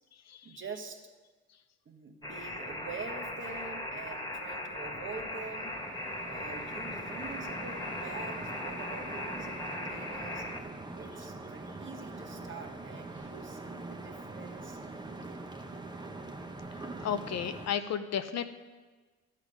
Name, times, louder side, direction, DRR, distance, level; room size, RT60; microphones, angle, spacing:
voice 1, 0.4-1.2 1.8-5.8 6.2-10.5 11.0-15.7, right 4 dB, 40° right, 3 dB, 1.4 m, -46 dB
sound 1, 2.2-10.6, left 1 dB, 10° left, 1.7 m, -39 dB
sound 2, 5.0-17.7, right 2 dB, 15° right, 1.0 m, -44 dB
voice 2, 17.0-18.5, left 8 dB, 60° left, 10 dB, 0.7 m, -32 dB
12.0 x 8.3 x 5.1 m, 1.3 s
cardioid pair, 90°, 30 cm